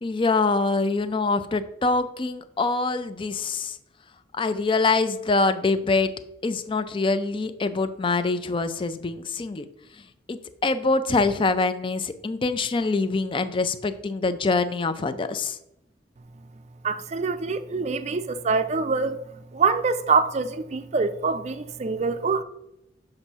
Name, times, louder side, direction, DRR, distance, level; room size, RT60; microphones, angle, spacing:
voice 1, 0.0-3.8 4.3-6.1 6.4-9.7 10.3-15.6, left 3 dB, 30° left, 0.4 m, -24 dB
voice 2, 16.8-22.4, right 4 dB, 40° right, 0.4 m, -25 dB
7.2 x 2.6 x 5.5 m
head